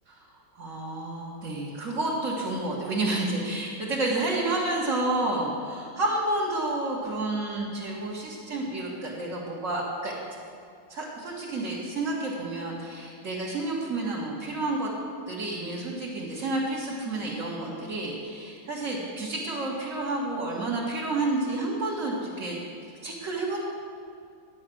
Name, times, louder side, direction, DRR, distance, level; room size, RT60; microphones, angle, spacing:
voice 1, 0.6-10.1 10.9-14.9 15.3-22.6 23.0-23.6, right 2 dB, 40° right, -6 dB, 1.9 m, -30 dB
11.5 x 8.4 x 6.2 m, 2.3 s
omnidirectional pair, 2.1 m